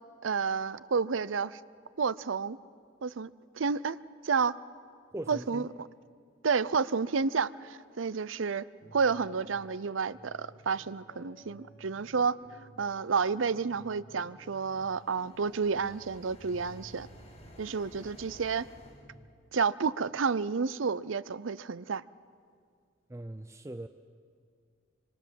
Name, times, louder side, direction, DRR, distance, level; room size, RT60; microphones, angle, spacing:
voice 1, 0.2-1.6 2.0-2.6 3.0-3.3 3.6-4.0 4.2-4.5 5.3-5.6 6.4-8.6 8.9-12.4 12.8-17.1 17.6-18.7 19.5-22.0, right 5 dB, 80° right, 18 dB, 0.6 m, -30 dB
voice 2, 5.1-5.7 23.1-23.9, right 1 dB, 15° right, 8 dB, 0.6 m, -40 dB
sound 1, 8.8-19.3, right 1 dB, 60° left, 2.3 m, -55 dB
sound 2, 14.3-19.0, left 1 dB, 35° left, 5.0 m, -54 dB
26.5 x 25.0 x 7.6 m, 2.2 s
head